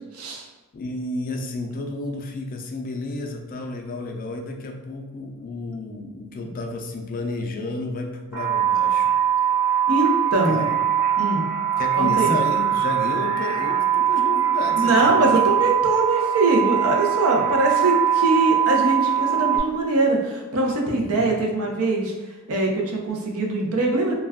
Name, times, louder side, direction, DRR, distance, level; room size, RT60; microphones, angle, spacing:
voice 1, 0.1-0.5 9.9-10.7 11.2-11.5 12.0-12.4 14.8-22.1 22.5-24.2, right 2 dB, 75° right, 0 dB, 0.6 m, -22 dB
voice 2, 0.7-9.1 10.5-10.8 11.8-15.6 20.9-21.3, left 2 dB, 40° left, 3 dB, 0.4 m, -31 dB
sound 1, 8.3-19.6, right 9 dB, 15° right, 0.7 m, -22 dB
2.3 x 2.2 x 3.4 m, 1.2 s
head